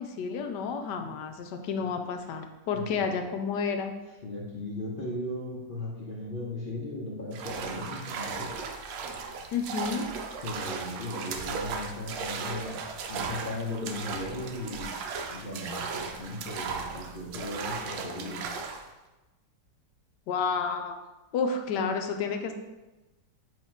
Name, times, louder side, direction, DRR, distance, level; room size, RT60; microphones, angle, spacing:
voice 1, 0.0-3.9 9.5-10.1 20.3-21.0 21.3-22.5, left 5 dB, 75° left, 5 dB, 1.1 m, -30 dB
voice 2, 2.7-3.2 4.2-8.5 10.4-12.8 13.1-14.9 15.3-18.5, left 1 dB, 45° left, -5 dB, 0.7 m, -37 dB
sound 1, 7.3-18.9, right 5 dB, 90° right, 1.3 m, -36 dB
7.8 x 2.8 x 4.3 m, 1.1 s
omnidirectional pair, 1.9 m